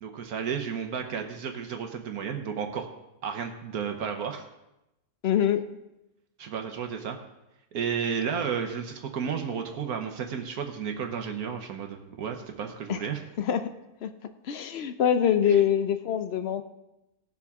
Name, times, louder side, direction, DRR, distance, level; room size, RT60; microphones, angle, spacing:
voice 1, 0.0-2.9 3.2-4.4 6.4-7.2 7.7-13.2 15.5-15.6, right 7 dB, 70° right, 4 dB, 1.3 m, -32 dB
voice 2, 5.2-5.6 12.9-13.0 13.4-13.6 14.0-14.1 14.4-16.6, left 9 dB, 65° left, 9 dB, 0.6 m, -24 dB
18.0 x 7.1 x 3.6 m, 0.92 s
omnidirectional pair, 1.7 m